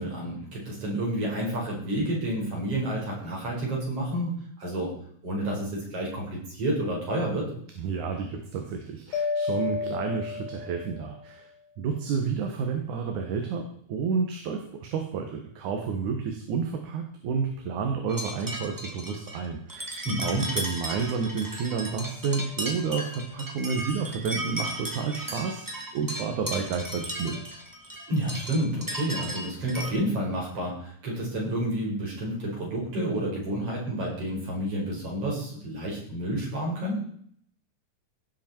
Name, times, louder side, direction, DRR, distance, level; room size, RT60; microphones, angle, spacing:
voice 1, 0.0-4.3 4.6-4.9 5.2-7.5 20.0-20.4 28.1-37.0, right 1 dB, 45° right, -3 dB, 6.4 m, -30 dB
voice 2, 7.8-11.5 11.8-27.4, right 5 dB, 75° right, 4 dB, 2.7 m, -30 dB
Mallet percussion, 9.1-11.2, left 4 dB, 75° left, 2.4 m, -31 dB
sound 1, 18.1-29.9, right 1 dB, 10° right, 0.9 m, -36 dB
17.0 x 7.8 x 4.5 m, 0.63 s
omnidirectional pair, 3.6 m